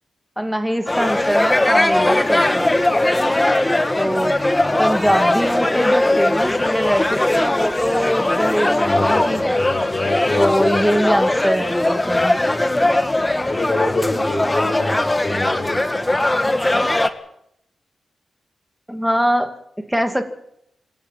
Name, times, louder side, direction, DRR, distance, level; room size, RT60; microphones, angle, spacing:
voice 1, 0.4-2.8 4.0-4.4 4.8-9.6 10.4-12.4 18.9-20.2, equal, 5° right, 7 dB, 2.4 m, -22 dB
sound 1, 0.9-17.1, left 1 dB, 15° left, 1.5 m, -19 dB
voice 2, 4.6-5.1 8.8-11.2 13.5-16.5, left 2 dB, 40° left, 2 dB, 6.1 m, -26 dB
27.0 x 12.0 x 9.2 m, 0.75 s
wide cardioid pair, 105°, 0 cm